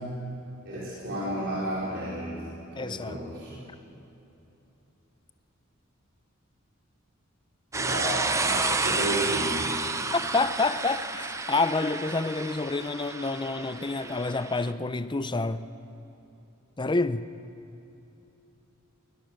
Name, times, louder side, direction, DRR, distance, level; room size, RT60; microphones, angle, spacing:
voice 1, 0.6-2.3 2.8-3.6 7.7-9.7, right 1 dB, 55° right, -8 dB, 4.8 m, -32 dB
voice 2, 2.7-3.2 10.1-15.7 16.8-17.3, left 3 dB, 20° left, 12 dB, 0.6 m, -28 dB
sound 1, 7.7-14.7, right 3 dB, 15° right, 0.7 m, -30 dB
22.0 x 19.5 x 6.5 m, 3.0 s
head